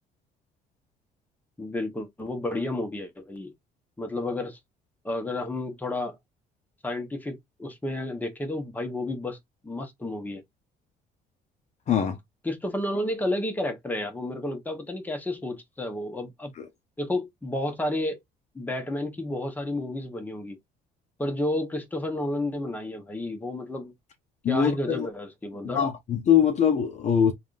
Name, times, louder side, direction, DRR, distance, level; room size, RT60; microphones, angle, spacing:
voice 1, 1.6-3.5 4.0-4.6 5.0-6.2 6.8-9.4 9.6-10.4 12.4-16.5 17.0-18.2 18.5-20.6 21.2-23.9 24.5-25.8, left 1 dB, 10° left, 0.9 m, -31 dB
voice 2, 11.9-12.2 16.6-16.7 24.4-25.1 25.7-27.3, left 8 dB, 45° left, 0.6 m, -22 dB
3.5 x 2.3 x 2.4 m
cardioid pair, 110°, 17 cm